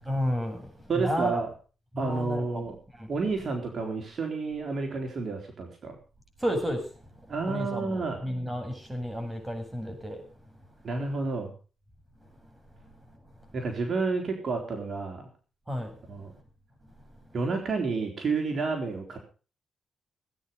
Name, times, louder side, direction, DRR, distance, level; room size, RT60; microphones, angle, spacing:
voice 1, 0.0-1.4 1.9-2.6 3.0-3.1 6.4-6.8 7.5-10.2 15.7-16.0, equal, 15° right, 5 dB, 8.0 m, -32 dB
voice 2, 0.9-1.5 2.0-2.8 3.1-6.0 7.3-8.3 10.8-11.5 13.5-15.3 16.1-16.3 17.3-19.2, right 4 dB, 55° right, 3 dB, 3.9 m, -30 dB
19.0 x 9.7 x 5.6 m, 0.37 s
cardioid pair, 65°, 0 cm